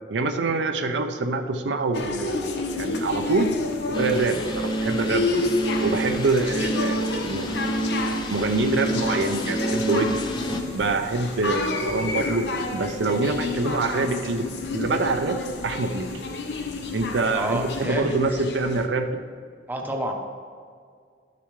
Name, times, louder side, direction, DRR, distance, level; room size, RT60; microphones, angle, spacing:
voice 1, 0.1-3.5 3.9-5.5 5.8-7.7 8.3-10.3 10.7-16.1 16.9-19.2, right 3 dB, 75° right, 6 dB, 0.6 m, -25 dB
sound 1, 1.9-18.9, left 3 dB, 70° left, 0.7 m, -30 dB
sound 2, 2.9-17.9, left 1 dB, 40° left, 2.5 m, -46 dB
sound 3, 3.9-10.6, right 1 dB, 25° left, 0.6 m, -28 dB
voice 2, 17.3-18.4 19.7-20.1, right 1 dB, 10° right, 2 dB, 0.8 m, -29 dB
12.0 x 6.8 x 3.2 m, 2.1 s
head